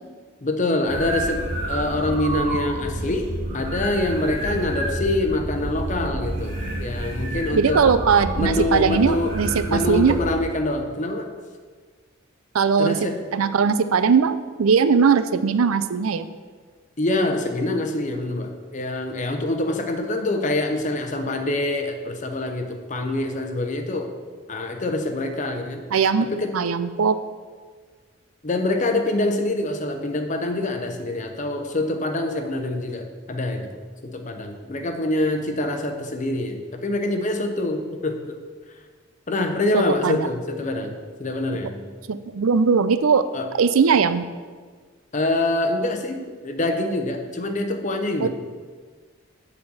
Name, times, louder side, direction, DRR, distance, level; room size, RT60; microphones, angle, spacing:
voice 1, 0.4-3.3 3.5-7.8 8.4-9.3 9.7-11.3 12.8-13.2 17.0-24.1 24.5-25.8 26.2-26.5 28.4-33.7 34.0-38.4 39.3-41.8 43.3-43.5 45.1-48.3, left 2 dB, 35° left, 5 dB, 0.7 m, -25 dB
sound 1, 0.9-10.4, right 1 dB, 45° right, 1.7 m, -29 dB
voice 2, 7.5-10.2 12.5-13.0 13.3-16.3 25.9-26.3 26.5-27.2 39.7-40.3 42.1-43.2 43.6-44.2 48.2-48.3, right 6 dB, 90° right, 12 dB, 0.5 m, -19 dB
7.8 x 4.2 x 7.0 m, 1.5 s
head